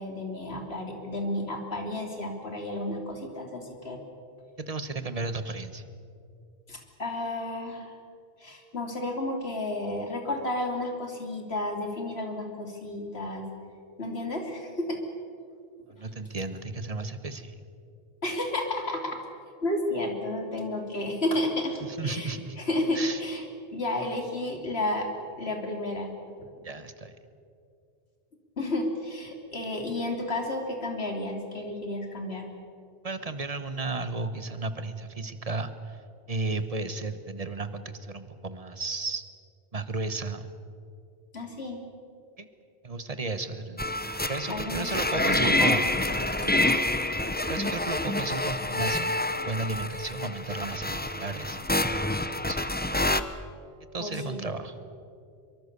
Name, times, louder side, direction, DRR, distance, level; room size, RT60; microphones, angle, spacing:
voice 1, 0.0-4.0 6.7-7.9 8.4-13.5 14.0-15.0 18.2-19.2 19.6-23.4 23.7-25.1 25.4-26.1 28.6-32.5 41.3-41.8 44.5-44.9 45.2-45.8 46.4-46.7 54.0-54.4, left 1 dB, 80° left, 2 dB, 3.4 m, -32 dB
voice 2, 4.6-5.8 15.9-17.6 21.8-22.6 22.9-23.2 26.6-27.2 33.0-36.0 36.3-39.2 39.7-40.5 42.4-42.5 42.8-43.9 44.2-45.9 47.5-49.1 49.4-52.6 53.9-54.7, right 3 dB, 35° right, 11 dB, 1.3 m, -34 dB
sound 1, 43.8-53.2, left 1 dB, 10° left, 0.7 m, -27 dB
24.5 x 23.5 x 6.9 m, 2.5 s
omnidirectional pair, 1.1 m